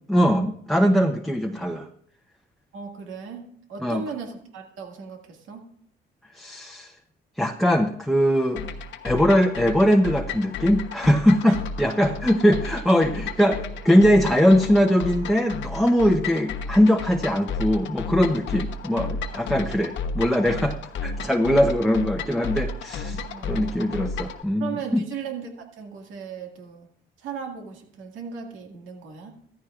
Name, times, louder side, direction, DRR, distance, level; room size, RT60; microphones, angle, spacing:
voice 1, 0.1-1.9 3.8-4.0 6.3-6.9 7.4-8.6 9.0-20.8 21.0-25.0, equal, ahead, 3 dB, 0.8 m, -21 dB
voice 2, 2.7-5.6 11.4-11.6 23.2-23.7 24.6-26.9 27.2-29.3, right 6 dB, 85° right, 2 dB, 2.0 m, -37 dB
sound 1, 8.6-24.4, left 4 dB, 70° left, 1.1 m, -33 dB
14.5 x 14.0 x 2.5 m, 0.65 s
cardioid pair, 90°, 20 cm